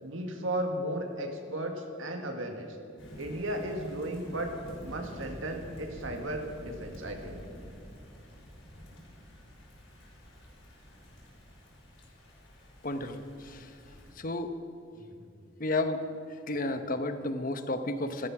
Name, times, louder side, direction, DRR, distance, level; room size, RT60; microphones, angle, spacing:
voice 1, 0.0-2.8 3.2-4.5 4.8-7.4 14.9-15.0, right 1 dB, 85° right, 4 dB, 1.9 m, -35 dB
Thunder / Rain, 3.0-14.1, equal, 80° left, 4.7 m, -48 dB
voice 2, 12.8-13.6 14.2-14.5 15.6-16.0 16.5-18.3, left 2 dB, 45° left, 9 dB, 1.0 m, -32 dB
16.0 x 13.0 x 6.0 m, 2.5 s
head